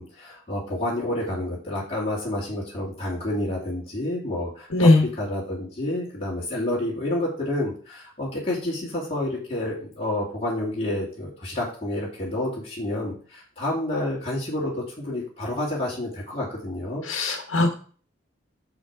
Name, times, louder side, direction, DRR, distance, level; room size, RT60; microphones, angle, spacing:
voice 1, 0.0-17.4, left 1 dB, 30° left, -6 dB, 2.3 m, -29 dB
voice 2, 4.7-5.1 17.1-17.7, left 2 dB, 80° left, 3 dB, 1.3 m, -19 dB
6.5 x 6.2 x 4.7 m, 0.43 s
head